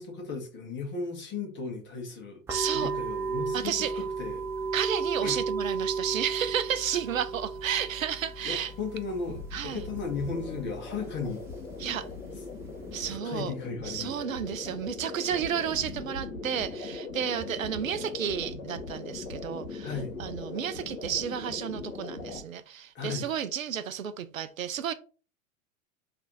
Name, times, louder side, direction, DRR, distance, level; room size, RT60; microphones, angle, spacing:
voice 1, 0.0-2.4 2.7-4.4 5.2-5.4 8.4-11.4 13.1-14.1 19.8-20.1 22.9-23.3, left 4 dB, 25° left, 1.5 m, -35 dB
sound 1, 2.5-13.1, right 4 dB, 5° right, 0.3 m, -35 dB
voice 2, 2.5-2.9 3.5-3.9 4.7-8.7 9.5-9.9 11.8-12.1 12.9-13.5 13.8-19.9 20.2-24.9, right 9 dB, 70° right, 0.5 m, -32 dB
sound 2, 9.3-22.4, left 3 dB, 60° left, 1.5 m, -40 dB
3.2 x 2.9 x 3.9 m
figure-of-eight pair, 90°, 42 cm